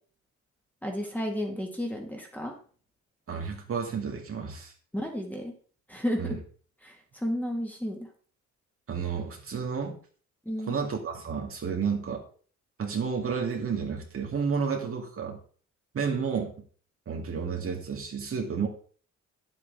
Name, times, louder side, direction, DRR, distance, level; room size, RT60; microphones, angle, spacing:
voice 1, 0.8-2.5 4.9-5.5 5.9-6.4 6.8-8.0 10.5-10.7, equal, 5° left, 1 dB, 2.3 m, -32 dB
voice 2, 3.3-4.7 6.2-6.4 8.9-10.0 10.7-12.2 12.8-15.4 15.9-16.5 17.1-18.7, right 6 dB, 45° right, 1 dB, 2.2 m, -31 dB
9.7 x 8.0 x 3.9 m, 0.43 s
cardioid pair, 90°, 30 cm